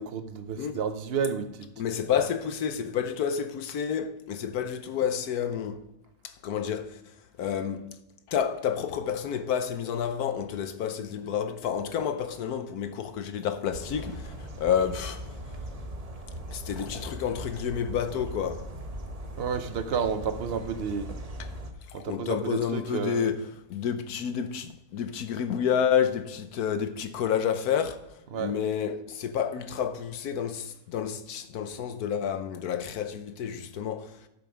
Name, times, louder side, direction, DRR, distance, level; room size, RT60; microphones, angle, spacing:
voice 1, 0.0-1.7 2.1-2.3 19.4-21.1 21.9-23.4 28.3-28.6, right 6 dB, 80° right, 0.5 m, -31 dB
voice 2, 1.8-5.8 6.2-7.9 8.3-15.3 16.5-18.7 21.4-21.5 21.9-34.3, left 8 dB, 65° left, 1.2 m, -30 dB
sound 1, 13.7-21.7, right 1 dB, 30° right, 0.8 m, -39 dB
11.5 x 7.0 x 4.9 m
omnidirectional pair, 1.9 m